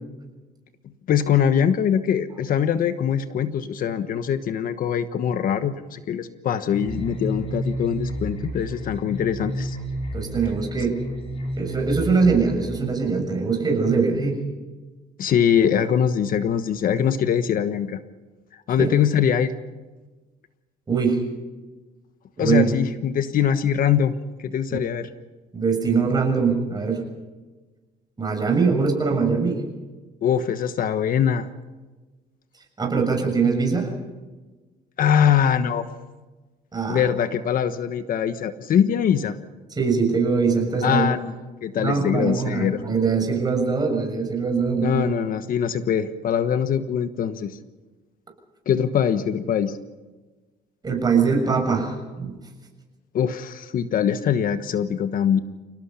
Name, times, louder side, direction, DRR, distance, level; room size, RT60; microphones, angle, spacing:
voice 1, 1.1-9.8 15.2-18.0 18.7-19.5 22.4-24.1 24.4-25.1 30.2-31.5 35.0-35.8 36.9-39.4 40.8-41.4 41.6-42.8 44.8-47.6 48.7-49.8 53.1-55.4, left 8 dB, 55° left, 11 dB, 1.2 m, -22 dB
sound 1, 6.7-12.8, right 1 dB, 35° left, 6.5 m, -31 dB
voice 2, 10.1-11.0 11.6-14.4 18.8-18.9 20.9-21.2 22.4-22.7 25.5-27.0 28.2-29.6 32.8-33.9 36.7-37.0 39.8-41.1 41.8-45.3 50.8-52.3, right 5 dB, 25° right, 2 dB, 6.9 m, -22 dB
28.5 x 18.5 x 5.7 m, 1.2 s
cardioid pair, 110°, 17 cm